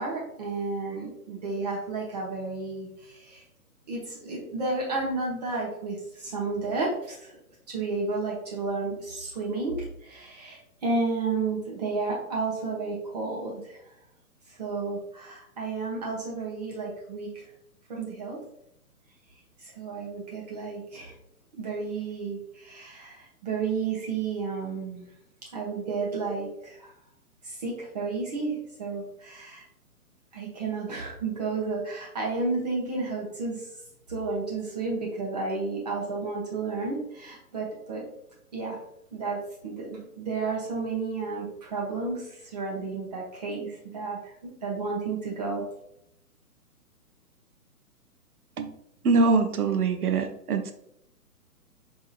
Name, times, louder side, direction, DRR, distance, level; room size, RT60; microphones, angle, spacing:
voice 1, 0.0-3.4 3.9-7.3 7.7-13.8 14.5-17.5 17.9-18.4 19.6-21.1 21.5-25.1 25.5-26.9 27.4-29.6 30.3-33.6 34.1-38.0 38.5-38.8 39.1-39.4 39.6-45.6, right 3 dB, 25° right, -4 dB, 0.7 m, -32 dB
voice 2, 49.0-50.7, right 4 dB, 75° right, 7 dB, 0.6 m, -23 dB
4.7 x 2.7 x 2.4 m, 0.76 s
figure-of-eight pair, 130°, 46 cm